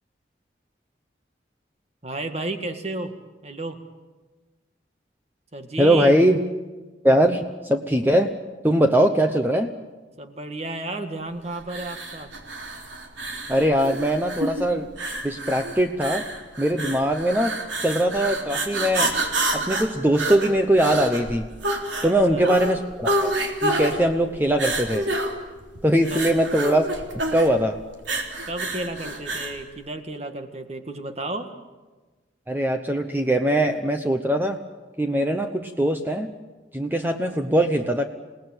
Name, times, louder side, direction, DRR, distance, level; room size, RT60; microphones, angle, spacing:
voice 1, 2.0-3.1 3.4-3.8 5.5-6.1 10.2-12.3 22.0-22.5 26.1-26.2 28.5-31.5, right 2 dB, 35° right, 7 dB, 1.8 m, -32 dB
voice 2, 5.8-6.4 7.0-8.4 8.6-9.7 13.5-14.9 15.2-16.2 16.6-17.6 17.8-19.2 19.5-21.5 22.0-23.3 23.6-25.1 25.8-26.9 27.3-27.8 32.5-34.6 35.0-36.3 36.7-38.0, right 1 dB, 10° right, 5 dB, 0.9 m, -21 dB
sound 1, 11.7-29.6, right 1 dB, 80° right, 3.4 m, -28 dB
28.0 x 18.5 x 9.1 m, 1.3 s
head